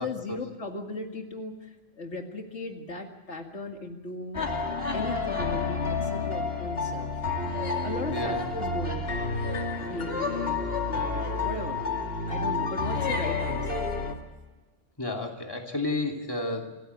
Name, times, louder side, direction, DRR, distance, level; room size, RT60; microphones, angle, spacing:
voice 1, 0.0-4.4 4.9-7.2 7.8-9.2 9.8-11.8 12.3-13.8, left 2 dB, 75° left, 3 dB, 2.4 m, -37 dB
sound 1, 4.3-14.1, left 3 dB, 55° left, 2.8 m, -29 dB
voice 2, 8.1-8.4 12.9-13.1 15.0-16.8, left 2 dB, 20° left, 1 dB, 2.9 m, -32 dB
27.5 x 15.0 x 8.2 m, 1.2 s
omnidirectional pair, 1.2 m